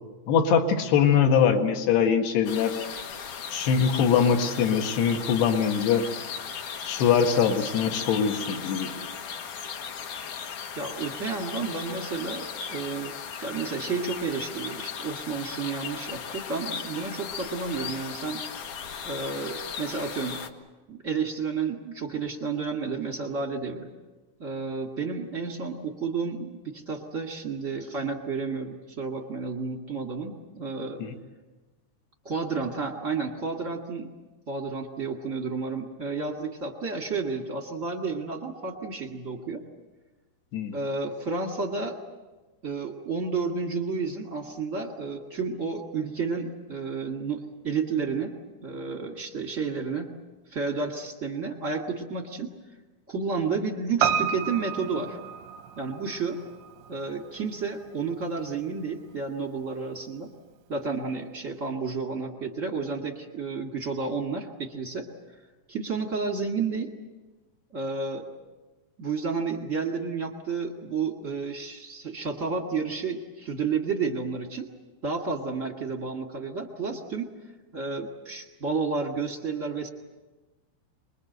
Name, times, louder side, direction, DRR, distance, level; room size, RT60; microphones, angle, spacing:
voice 1, 0.3-2.8 3.5-6.0 6.8-8.9 31.0-31.1 40.5-40.8, left 7 dB, 75° left, 5 dB, 3.8 m, -22 dB
sound 1, 2.4-20.5, left 7 dB, 60° left, 2.3 m, -37 dB
voice 2, 10.7-18.4 19.0-20.4 20.9-23.9 24.4-31.0 32.2-34.1 34.5-39.6 40.7-42.0 42.6-48.3 48.6-50.1 50.5-52.5 53.1-55.2 55.8-56.4 56.9-60.3 60.7-65.1 65.7-66.9 67.7-68.3 69.0-74.7 75.0-77.3 77.7-79.9, right 4 dB, 45° right, 2 dB, 1.0 m, -31 dB
Piano, 54.0-58.5 58.8-58.9, right 8 dB, 85° right, 3.1 m, -31 dB
26.0 x 22.0 x 8.0 m, 1.2 s
omnidirectional pair, 4.8 m